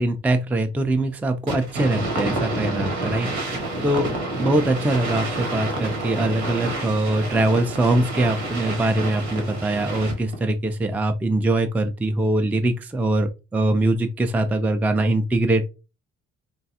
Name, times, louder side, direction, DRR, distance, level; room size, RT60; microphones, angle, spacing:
voice 1, 0.0-4.1 4.4-15.6, right 2 dB, 5° right, 6 dB, 0.4 m, -22 dB
sound 1, 1.5-10.4, right 2 dB, 85° right, 1.0 m, -28 dB
3.2 x 2.3 x 2.7 m, 0.29 s
supercardioid pair, 60°, 31 cm